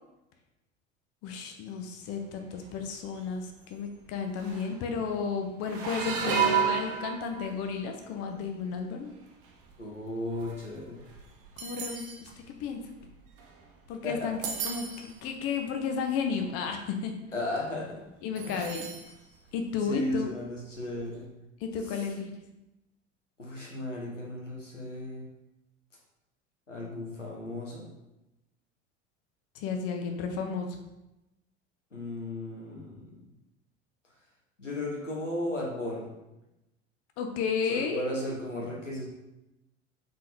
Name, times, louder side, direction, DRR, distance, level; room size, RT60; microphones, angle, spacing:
voice 1, 1.2-9.1 11.6-12.9 13.9-14.4 14.6-17.2 18.2-18.9 19.5-20.3 21.6-22.3 29.5-30.8 37.2-38.1, left 5 dB, 40° left, 4 dB, 0.7 m, -33 dB
sound 1, 2.3-2.7 3.1-3.3 4.1-4.2 4.4-4.9 5.6-7.8 8.4-8.7 9.4-13.9 14.2-15.2 15.9-16.0 16.3-16.6 18.4-19.1 19.5-19.6 20.9-21.0, right 7 dB, 40° right, 0.8 m, -33 dB
voice 2, 9.8-11.0 14.0-14.3 17.3-18.0 18.4-18.6 19.8-21.3 23.4-25.3 26.7-27.9 31.9-33.2 34.6-36.1 37.7-39.1, left 1 dB, 90° left, -2 dB, 1.0 m, -35 dB
4.0 x 3.7 x 3.3 m, 0.95 s
figure-of-eight pair, 70°, 36 cm